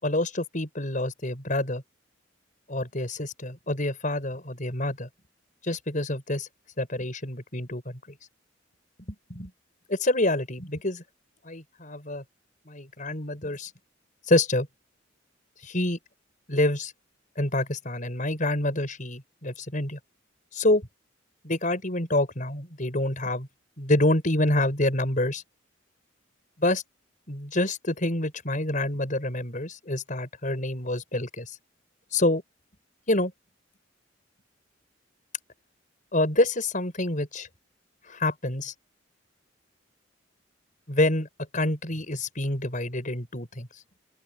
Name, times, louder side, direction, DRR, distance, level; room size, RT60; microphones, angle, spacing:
voice 1, 0.0-1.8 2.7-5.1 5.6-6.5 6.8-7.8 9.3-9.5 9.9-11.0 11.4-12.2 12.7-13.7 14.2-14.7 15.6-16.0 16.5-16.9 17.4-20.0 20.5-20.9 21.4-23.5 23.8-25.4 26.6-26.8 27.3-31.6 32.1-32.4 33.1-33.3 36.1-37.5 38.0-38.7 40.9-41.3 41.5-43.8, left 1 dB, 40° left, 5.7 m, -27 dB
open air
head